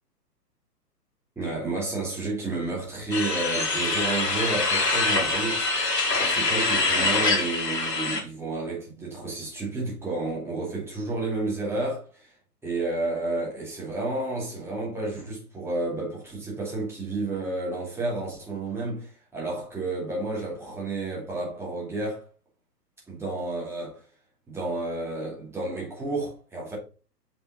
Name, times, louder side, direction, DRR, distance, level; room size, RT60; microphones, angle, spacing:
voice 1, 1.4-5.9 6.2-12.3 12.6-22.2 23.1-24.0 24.5-26.8, right 2 dB, 5° right, 2.6 m, -31 dB
sound 1, 3.1-8.2, left 3 dB, 70° left, 2.4 m, -24 dB
6.8 x 5.6 x 3.9 m
figure-of-eight pair, 120°, 49 cm